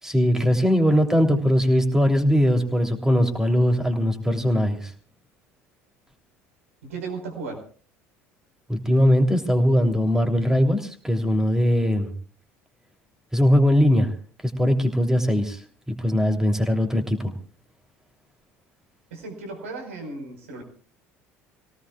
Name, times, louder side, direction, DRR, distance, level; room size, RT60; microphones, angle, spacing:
voice 1, 0.0-4.9 8.7-12.1 13.3-14.1 14.4-17.3, equal, 5° right, 4 dB, 3.2 m, -20 dB
voice 2, 6.8-7.6 19.1-20.6, right 3 dB, 80° right, 3 dB, 4.8 m, -35 dB
29.5 x 18.0 x 2.4 m, 0.40 s
hypercardioid pair, 65°, 7 cm